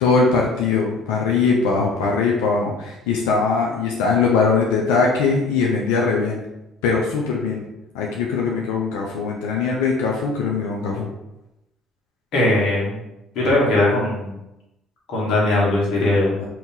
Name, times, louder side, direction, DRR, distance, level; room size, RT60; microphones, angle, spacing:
voice 1, 0.0-6.4 6.8-7.6 7.9-11.1 16.4-16.5, left 4 dB, 90° left, -1 dB, 0.5 m, -21 dB
voice 2, 12.3-12.9 13.3-14.3 15.1-16.3, left 2 dB, 70° left, -5 dB, 1.3 m, -19 dB
2.9 x 2.7 x 3.7 m, 0.91 s
supercardioid pair, 70°, 0 cm